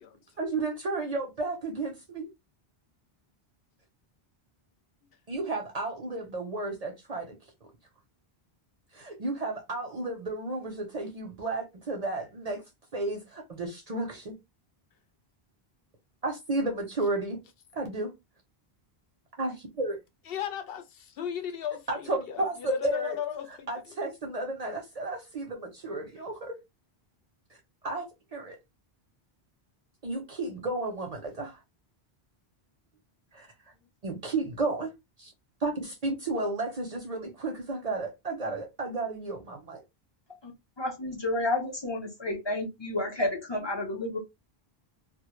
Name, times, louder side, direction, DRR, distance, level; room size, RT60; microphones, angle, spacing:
voice 1, 0.4-2.3 5.3-7.4 8.9-12.6 12.9-14.3 16.2-17.4 17.7-18.1 19.4-20.0 21.9-23.2 23.5-26.6 27.8-28.6 30.0-31.6 33.3-33.5 34.0-34.9 35.2-35.3 35.6-39.8, right 2 dB, 50° right, 0.5 m, -33 dB
voice 2, 20.3-23.7 24.0-24.1 33.7-33.9, left 9 dB, 70° left, 0.7 m, -36 dB
voice 3, 40.8-44.2, left 2 dB, 35° left, 0.5 m, -30 dB
2.1 x 2.0 x 2.9 m
omnidirectional pair, 1.0 m